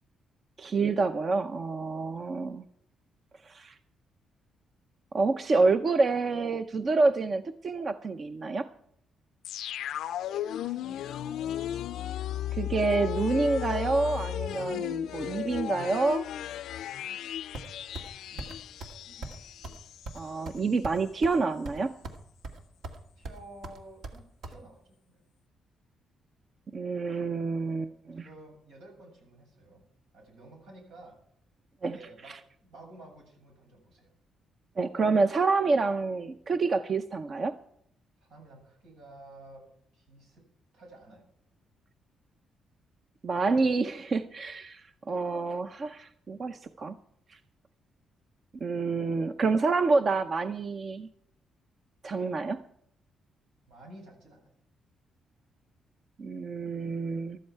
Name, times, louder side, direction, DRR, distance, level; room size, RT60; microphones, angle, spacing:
voice 1, 0.6-2.6 3.4-3.8 5.1-8.7 12.5-16.3 20.1-21.9 26.7-28.2 31.8-32.0 32.3-32.4 34.8-37.5 43.2-47.0 47.3-47.4 48.6-51.1 52.0-52.6 56.2-57.4, right 3 dB, 40° right, 10 dB, 0.7 m, -28 dB
sound 1, 9.4-20.3 20.6-20.7, left 11 dB, 80° left, 0.4 m, -35 dB
voice 2, 10.6-11.0 18.3-18.5 19.0-19.4 23.2-24.8 25.1-25.2 28.1-29.8 30.1-31.2 31.8-32.3 32.6-34.1 38.2-39.6 39.9-40.4 40.7-41.3 53.7-54.6, right 2 dB, 85° right, 1 dB, 7.3 m, -51 dB
sound 2, 17.5-18.1 18.4-18.5 18.8-19.0 19.2-19.4 19.6-19.8 20.1-21.4 21.6-22.2 22.4-23.0 23.2-24.6, right 2 dB, 70° right, 2.0 m, -40 dB
14.5 x 13.0 x 4.6 m, 0.70 s
cardioid pair, 115°, 0 cm